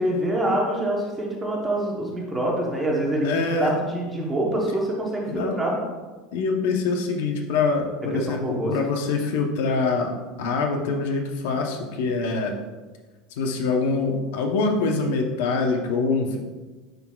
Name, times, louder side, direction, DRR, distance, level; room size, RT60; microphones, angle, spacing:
voice 1, 0.0-5.7 8.1-8.7, right 1 dB, 10° right, -2 dB, 0.9 m, -25 dB
voice 2, 3.2-3.8 5.3-5.6 6.3-10.1 10.4-12.5 13.3-16.4, left 4 dB, 75° left, 3 dB, 0.8 m, -24 dB
10.5 x 3.9 x 2.3 m, 1.3 s
supercardioid pair, 170°, 0 cm